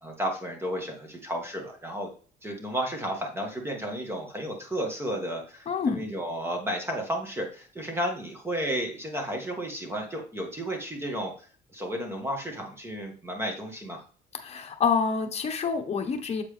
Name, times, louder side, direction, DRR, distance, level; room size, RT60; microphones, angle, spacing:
voice 1, 0.0-2.1 2.4-11.3 11.7-14.0, equal, 15° right, 2 dB, 1.9 m, -32 dB
voice 2, 5.7-6.0 14.4-16.4, left 5 dB, 40° left, 6 dB, 1.1 m, -27 dB
7.5 x 4.5 x 3.4 m, 0.42 s
cardioid pair, 110°, 17 cm